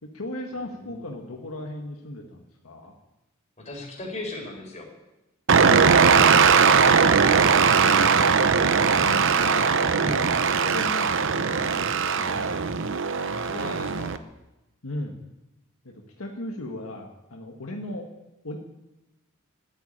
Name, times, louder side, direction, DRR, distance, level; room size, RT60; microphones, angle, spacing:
voice 1, 0.0-2.9 5.6-6.1 7.5-8.5 9.0-9.6 10.0-12.7 14.8-15.2 15.8-18.1 18.4-18.6, left 1 dB, 80° left, 1 dB, 1.6 m, -36 dB
voice 2, 0.7-1.1 3.6-4.9 9.4-9.7 13.3-14.2, left 2 dB, 35° left, 0 dB, 4.2 m, -37 dB
sound 1, 5.5-14.2, right 6 dB, 60° right, 0.7 m, -20 dB
13.0 x 8.4 x 9.8 m, 0.95 s
head